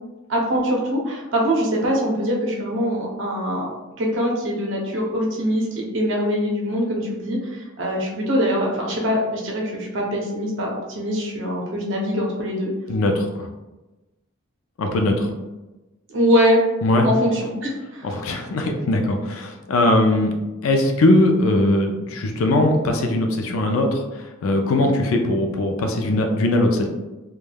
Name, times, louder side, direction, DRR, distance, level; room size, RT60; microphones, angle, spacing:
voice 1, 0.3-3.7 4.0-12.7 16.1-16.6 17.0-18.1, equal, 60° right, -2 dB, 0.6 m, -23 dB
voice 2, 12.9-13.5 14.8-15.3 16.8-17.1 18.0-20.3 20.6-26.9, left 1 dB, 80° left, 3 dB, 0.4 m, -20 dB
3.2 x 2.2 x 2.2 m, 1.1 s
head